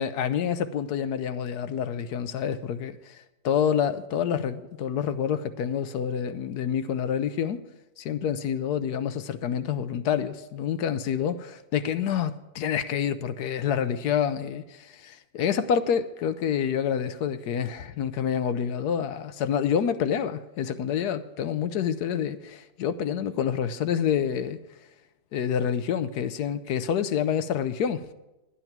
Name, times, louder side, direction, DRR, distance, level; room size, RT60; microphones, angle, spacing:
voice 1, 0.0-7.6 8.0-24.6 25.3-28.1, left 8 dB, 75° left, 1.2 m, -28 dB
11.0 x 10.0 x 5.9 m
omnidirectional pair, 1.8 m